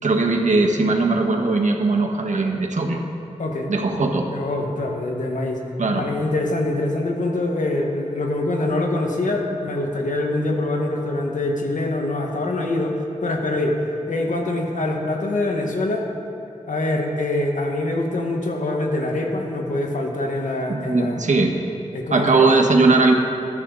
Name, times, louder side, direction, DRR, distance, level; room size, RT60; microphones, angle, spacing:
voice 1, 0.0-3.0 3.7-4.3 5.8-6.1 20.7-21.5 22.1-23.1, right 3 dB, 75° right, 2 dB, 1.6 m, -19 dB
voice 2, 3.4-3.7 4.3-5.6 5.9-13.8 14.1-16.1 16.7-21.3 21.9-22.5, left 2 dB, 85° left, 1 dB, 1.9 m, -24 dB
21.0 x 13.0 x 4.2 m, 2.6 s
wide cardioid pair, 105°, 13 cm